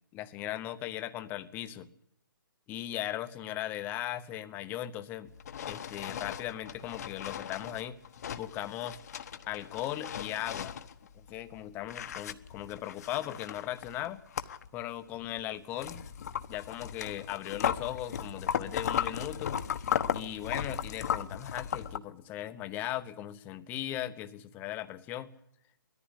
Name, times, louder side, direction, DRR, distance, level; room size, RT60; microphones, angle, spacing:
voice 1, 0.1-1.9 2.7-5.3 5.7-8.0 8.4-9.0 9.5-10.7 11.1-14.2 14.7-16.0 16.5-19.6 20.1-25.3, left 13 dB, 15° left, 11 dB, 0.9 m, -38 dB
sound 1, 5.3-11.6 11.8-14.8 15.2-22.0, left 8 dB, 45° left, 1.2 m, -36 dB
20.5 x 14.5 x 9.9 m, 0.74 s
hypercardioid pair, 155°, 12 cm